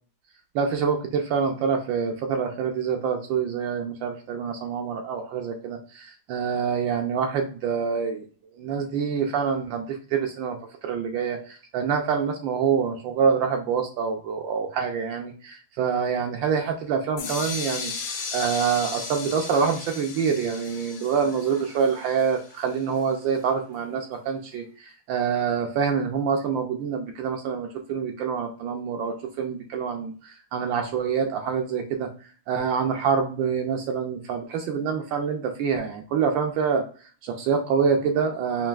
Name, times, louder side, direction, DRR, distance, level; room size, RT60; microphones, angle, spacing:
voice 1, 0.5-8.2 8.6-10.6 10.8-17.9 18.3-32.1 32.5-36.8 37.2-38.7, right 6 dB, 75° right, 3 dB, 1.3 m, -26 dB
sound 1, 17.2-23.0, left 5 dB, 70° left, 1.3 m, -36 dB
5.5 x 2.6 x 2.3 m, 0.39 s
omnidirectional pair, 2.2 m